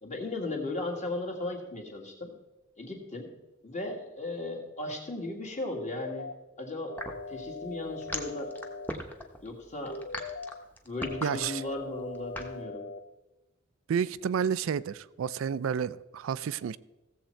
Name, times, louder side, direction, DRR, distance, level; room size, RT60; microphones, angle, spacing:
voice 1, 0.0-2.3 2.8-3.3 3.6-7.0 7.3-8.5 9.4-10.0 10.9-12.9, left 2 dB, 35° left, 1 dB, 1.9 m, -36 dB
sound 1, 5.7-6.3 6.9-8.9 9.9-10.5 11.0-13.0, left 3 dB, 65° left, 0.6 m, -41 dB
sound 2, 7.0-12.6, left 1 dB, 10° left, 1.0 m, -38 dB
voice 2, 11.2-11.6 13.9-16.8, right 7 dB, 75° right, 16 dB, 0.3 m, -30 dB
15.5 x 7.4 x 4.5 m, 1.1 s
head